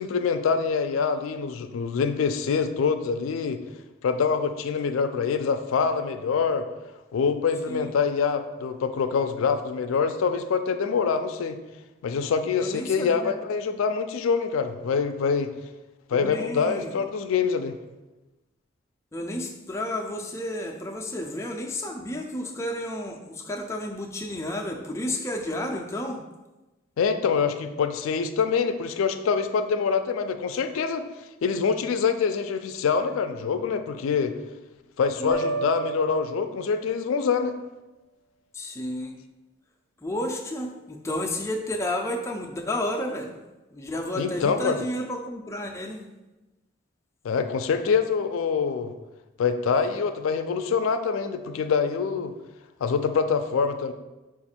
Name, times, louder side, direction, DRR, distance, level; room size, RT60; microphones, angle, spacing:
voice 1, 0.0-3.6 4.0-6.6 7.1-11.6 12.0-15.5 16.1-17.8 27.0-31.0 31.4-34.3 35.0-37.6 44.2-44.8 47.2-48.9 49.4-52.3 52.8-53.9, left 5 dB, 85° left, 9 dB, 0.3 m, -25 dB
voice 2, 12.6-13.3 16.1-17.0 19.1-26.2 35.2-35.5 38.5-39.1 40.0-43.4 43.7-46.1, left 1 dB, 15° left, 1 dB, 0.3 m, -31 dB
sound 1, 35.3-37.2, right 4 dB, 60° right, 0.7 m, -33 dB
5.2 x 2.4 x 4.2 m, 1.1 s
head